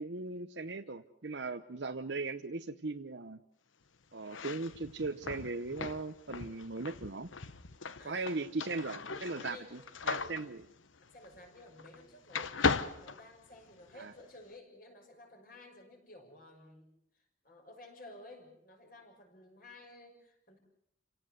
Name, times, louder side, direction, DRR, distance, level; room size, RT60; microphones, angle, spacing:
voice 1, 0.0-3.4 4.1-7.3 8.0-9.8 10.1-10.6 14.0-14.1, right 3 dB, 65° right, 7 dB, 0.9 m, -38 dB
sound 1, 4.2-12.0 12.3-13.9, left 5 dB, 85° left, 1.1 m, -38 dB
voice 2, 8.0-8.4 9.4-9.7 10.1-10.3 11.0-16.9 17.1-20.6, left 1 dB, 45° left, 3 dB, 6.4 m, -53 dB
28.5 x 17.5 x 8.0 m, 0.73 s
head